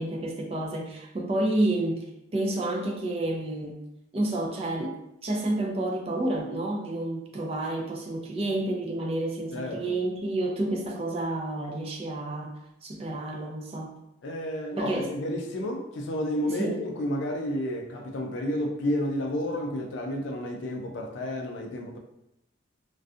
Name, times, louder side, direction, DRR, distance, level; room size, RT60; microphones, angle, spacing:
voice 1, 0.0-3.8 4.1-14.0 14.8-15.2 16.6-16.8, right 1 dB, 30° right, 0 dB, 0.3 m, -30 dB
voice 2, 9.5-9.9 14.2-22.0, left 1 dB, 65° left, 2 dB, 0.4 m, -31 dB
2.5 x 2.2 x 2.4 m, 0.84 s
head